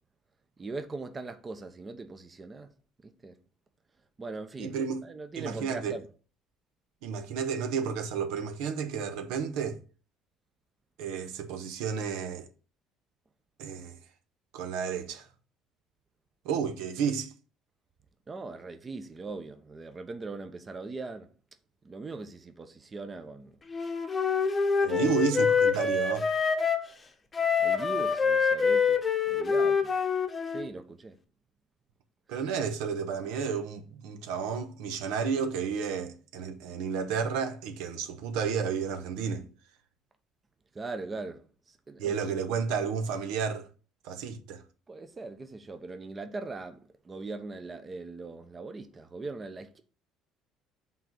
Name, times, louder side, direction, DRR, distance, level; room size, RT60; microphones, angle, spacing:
voice 1, 0.6-2.7 3.0-3.3 4.2-4.7 5.0-6.0 18.3-21.3 21.8-23.6 24.8-25.1 27.6-29.0 29.3-29.9 30.5-31.2 32.3-32.4 40.7-42.1 44.9-49.8, right 3 dB, 25° right, 0.7 m, -40 dB
voice 2, 4.6-5.0 5.4-6.0 7.0-9.8 11.0-12.5 13.6-14.0 14.5-15.3 16.4-17.3 24.8-26.3 32.3-39.5 42.0-43.7 44.0-44.6, right 6 dB, 85° right, 1.0 m, -31 dB
Wind instrument woodwind instrument, 23.7-26.9 27.3-30.7, left 5 dB, 25° left, 0.9 m, -26 dB
5.7 x 3.8 x 6.0 m
cardioid pair, 110°, 0 cm